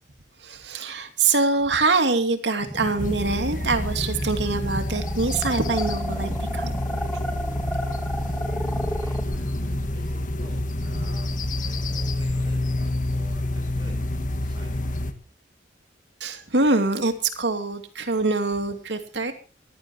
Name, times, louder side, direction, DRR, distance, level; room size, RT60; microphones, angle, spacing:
voice 1, 0.4-6.7 7.1-7.2 16.2-19.3, right 3 dB, 75° right, 7 dB, 2.7 m, -24 dB
sound 1, 2.6-9.2, equal, 5° left, 2.1 m, -32 dB
sound 2, 3.0-15.1, left 1 dB, 45° left, 1.9 m, -28 dB
voice 2, 8.0-14.1 14.4-15.0, right 1 dB, 25° right, 2 dB, 7.0 m, -51 dB
23.0 x 15.5 x 3.0 m, 0.35 s
head